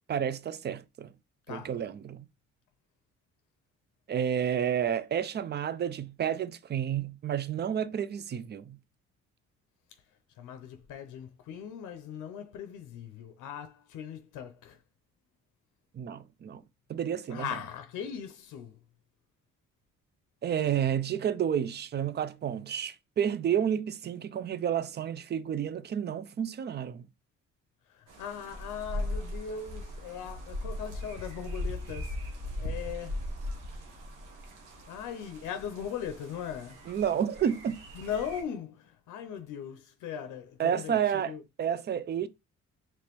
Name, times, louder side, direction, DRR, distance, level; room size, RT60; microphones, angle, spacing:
voice 1, 0.1-1.1 1.5-2.2 4.1-8.8 15.9-16.6 16.9-17.5 20.4-27.1 36.9-37.8 40.6-41.3 41.6-42.3, right 9 dB, 35° right, 0.4 m, -30 dB
voice 2, 10.4-14.8 17.3-18.8 27.9-32.2 32.6-33.2 34.9-36.8 37.9-41.4, left 8 dB, 85° left, 0.6 m, -39 dB
sound 1, 28.1-38.4, left 1 dB, 85° right, 1.1 m, -39 dB
5.0 x 3.0 x 3.0 m
cardioid pair, 90°, 30 cm